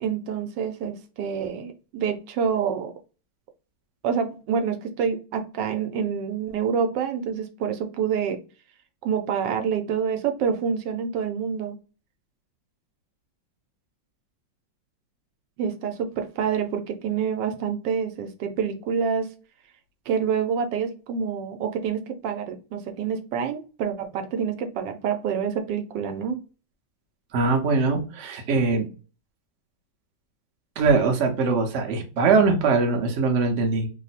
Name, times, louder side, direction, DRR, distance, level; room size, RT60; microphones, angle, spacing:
voice 1, 0.0-2.9 4.0-8.4 9.0-11.8 15.6-19.3 20.1-26.4, right 7 dB, 80° right, 6 dB, 1.3 m, -27 dB
voice 2, 27.3-28.9 30.8-33.9, right 4 dB, 55° right, 3 dB, 0.8 m, -22 dB
3.0 x 2.0 x 4.0 m, 0.34 s
omnidirectional pair, 1.9 m